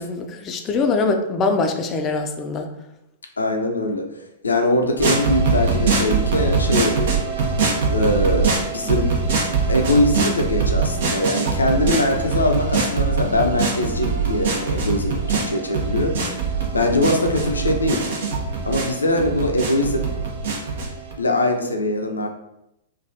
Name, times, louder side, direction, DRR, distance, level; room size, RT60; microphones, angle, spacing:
voice 1, 0.0-2.7, left 3 dB, 25° left, 5 dB, 0.4 m, -23 dB
voice 2, 3.4-4.1 4.4-7.2 7.9-9.1 9.7-16.2 16.7-18.1 18.7-20.1 21.2-22.3, left 1 dB, 80° left, 4 dB, 0.5 m, -22 dB
sound 1, 5.0-21.1, right 4 dB, 60° right, 0.7 m, -22 dB
3.2 x 2.3 x 2.5 m, 0.85 s
figure-of-eight pair, 105°, 0 cm